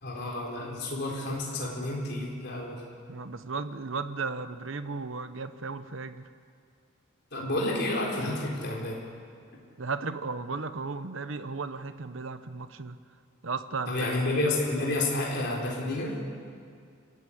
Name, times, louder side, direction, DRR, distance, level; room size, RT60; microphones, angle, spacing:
voice 1, 0.0-2.8 7.3-9.0 13.9-16.1, left 2 dB, 55° left, -2 dB, 4.0 m, -30 dB
voice 2, 3.1-6.3 9.8-13.0 13.4-14.0, right 4 dB, 70° right, 11 dB, 0.9 m, -35 dB
29.0 x 13.5 x 8.5 m, 2.3 s
head